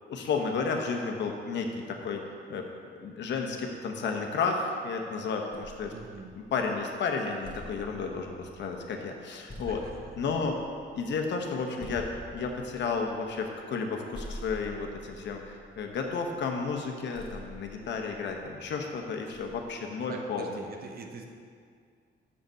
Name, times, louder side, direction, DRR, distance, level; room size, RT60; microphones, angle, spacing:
voice 1, 0.1-2.2 2.5-2.6 3.0-5.9 6.3-9.8 10.2-10.6 10.9-12.1 12.3-20.6, left 4 dB, 70° left, 3 dB, 1.0 m, -32 dB
sound 1, 5.5-6.8 7.2-13.9 14.1-16.4 17.1-18.6 19.3-19.8, left 1 dB, 25° left, 1.5 m, -47 dB
voice 2, 5.9-6.3 9.7-10.0 20.1-21.3, right 3 dB, 55° right, 3 dB, 1.0 m, -43 dB
6.7 x 5.2 x 6.3 m, 2.2 s
cardioid pair, 105°, 19 cm